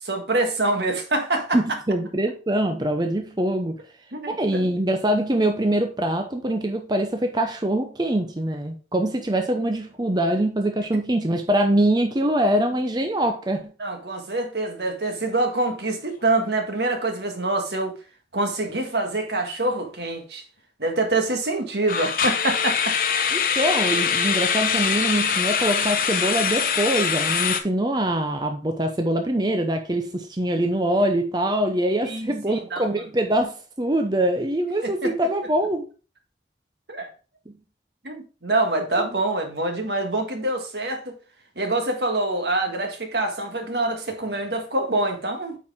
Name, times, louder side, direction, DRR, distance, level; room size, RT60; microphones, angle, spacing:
voice 1, 0.0-1.6 4.1-4.6 13.8-17.9 18.3-20.4 20.8-22.9 32.0-32.9 34.8-35.1 36.9-37.1 38.0-41.1 41.6-45.6, right 2 dB, 70° right, 1.6 m, -25 dB
voice 2, 1.5-3.8 4.3-13.6 23.3-35.9 37.5-37.6, right 1 dB, 25° right, 0.7 m, -23 dB
sound 1, 15.7-16.0 16.2-16.4 16.9-17.0 21.9-27.6, left 7 dB, 50° left, 0.8 m, -23 dB
8.8 x 4.7 x 3.6 m
head